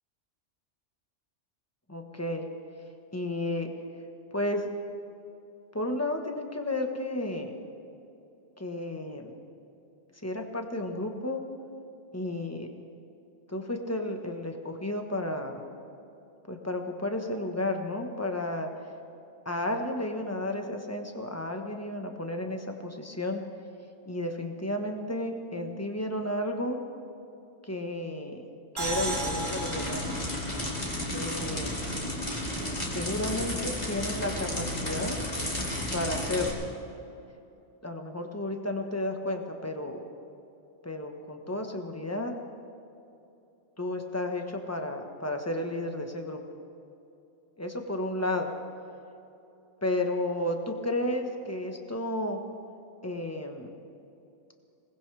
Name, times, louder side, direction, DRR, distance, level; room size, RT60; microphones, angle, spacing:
voice 1, 1.9-2.5 3.1-3.7 4.3-4.7 5.7-7.5 8.6-9.3 10.2-11.4 12.1-12.7 13.5-15.6 16.5-18.7 19.4-23.4 24.1-26.8 27.6-28.4 28.7-30.0 30.9-31.7 32.9-35.2 35.9-36.6 37.8-40.0 40.8-42.3 43.8-46.4 47.6-48.5 49.8-52.4 53.0-53.7, left 1 dB, 15° left, 4 dB, 1.2 m, -32 dB
sound 1, 28.8-36.5, left 1 dB, 35° left, 2.7 m, -33 dB
sound 2, 28.8-32.3, right 2 dB, 40° right, 1.6 m, -37 dB
22.0 x 19.5 x 3.4 m, 2.8 s
omnidirectional pair, 1.2 m